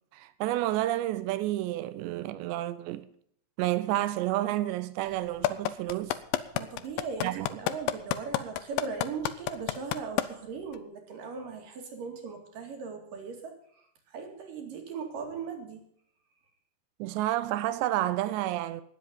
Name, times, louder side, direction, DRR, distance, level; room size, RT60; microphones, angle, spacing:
voice 1, 0.1-3.1 3.6-6.2 7.2-7.5 17.0-18.8, right 15 dB, 90° right, 3.1 m, -30 dB
sound 1, 5.4-10.2 10.7-10.8, left 14 dB, 80° left, 2.0 m, -27 dB
voice 2, 6.5-13.6 14.1-15.8, right 5 dB, 55° right, 3.7 m, -39 dB
19.5 x 7.8 x 5.3 m
omnidirectional pair, 4.9 m